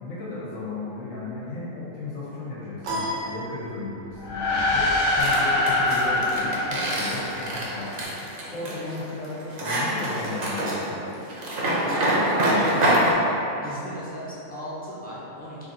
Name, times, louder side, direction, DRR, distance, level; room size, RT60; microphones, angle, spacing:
voice 1, 0.0-8.2 8.5-11.0, left 2 dB, 90° left, -8 dB, 1.4 m, -35 dB
sound 1, 2.8-4.2, equal, 75° right, 1.1 m, -32 dB
sound 2, 4.2-7.9, left 2 dB, 75° left, 1.0 m, -24 dB
sound 3, 5.2-13.1, right 1 dB, 50° right, 0.8 m, -25 dB
voice 2, 11.3-12.8 13.6-15.6, equal, 10° left, -10 dB, 0.5 m, -36 dB
3.4 x 2.6 x 3.8 m, 2.9 s
omnidirectional pair, 1.3 m